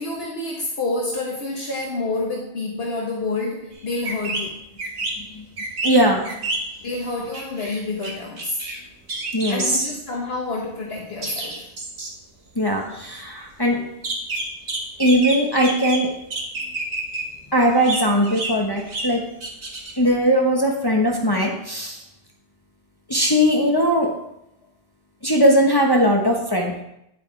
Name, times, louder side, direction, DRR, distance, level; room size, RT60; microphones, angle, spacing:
voice 1, 0.0-4.6 6.8-8.6 9.5-11.7 16.5-16.7, left 2 dB, 65° left, -2 dB, 1.3 m, -28 dB
sound 1, 3.7-3.8 4.1-4.5 4.8-5.2 5.6-6.9 7.3-8.1 8.4-8.8 9.1-10.0 10.3-10.4 11.2-12.1 14.0-16.0 16.3-17.2 17.6-19.1 19.4-20.0, right 2 dB, 75° right, 1.9 m, -28 dB
voice 2, 5.8-6.3 9.3-9.6 12.6-13.8 15.0-16.1 17.5-19.2 20.0-22.0 23.1-24.1 25.2-26.7, equal, 20° left, -1 dB, 1.1 m, -19 dB
9.8 x 8.3 x 3.3 m, 0.81 s
omnidirectional pair, 1.1 m